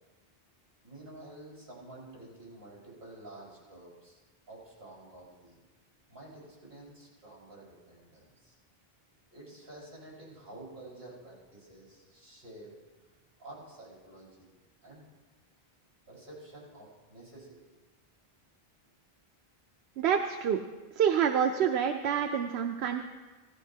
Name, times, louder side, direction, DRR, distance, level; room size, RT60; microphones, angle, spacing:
voice 1, 0.8-4.2 4.5-5.6 6.1-8.5 9.3-12.8 13.1-14.5 14.8-15.0 16.1-17.8, right 2 dB, 60° right, -6 dB, 5.0 m, -50 dB
voice 2, 20.0-20.6 21.0-23.0, right 8 dB, 85° right, 5 dB, 0.8 m, -27 dB
16.5 x 13.5 x 2.7 m, 1.3 s
omnidirectional pair, 1.1 m